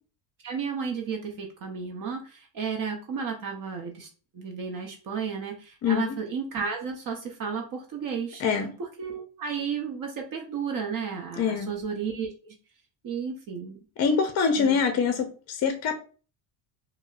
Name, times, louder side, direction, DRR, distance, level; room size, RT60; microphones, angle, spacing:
voice 1, 0.4-4.1 4.3-8.4 8.8-12.5 13.0-13.8 14.6-14.8, right 6 dB, 45° right, 3 dB, 0.7 m, -33 dB
voice 2, 5.8-6.2 8.4-8.7 11.4-11.7 14.0-15.9, left 6 dB, 35° left, 7 dB, 0.5 m, -24 dB
4.9 x 2.1 x 2.4 m, 0.37 s
cardioid pair, 140°, 45 cm